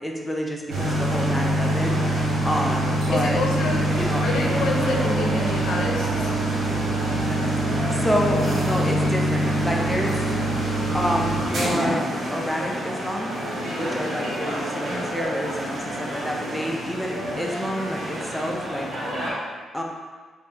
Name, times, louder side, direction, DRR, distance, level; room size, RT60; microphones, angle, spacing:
voice 1, 0.0-3.4 4.0-4.3 7.9-10.2 10.9-12.1 12.3-13.4 13.8-18.9 19.7-19.8, equal, 5° left, 0 dB, 0.5 m, -28 dB
sound 1, 0.7-19.3, right 1 dB, 70° right, 1.4 m, -25 dB
voice 2, 3.1-3.9 4.2-6.3 9.9-10.0, left 2 dB, 85° left, 0 dB, 0.5 m, -28 dB
3.1 x 3.0 x 3.3 m, 1.5 s
cardioid pair, 95°, 0 cm